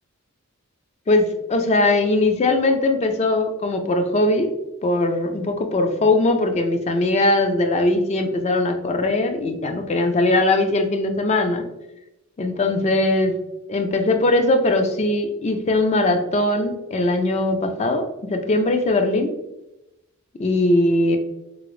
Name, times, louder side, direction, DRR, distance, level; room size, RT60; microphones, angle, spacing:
voice 1, 1.1-4.5 4.8-11.6 12.4-13.3 13.7-19.3 20.4-21.2, left 2 dB, 30° left, 5 dB, 0.3 m, -20 dB
3.7 x 2.0 x 3.0 m, 0.93 s
head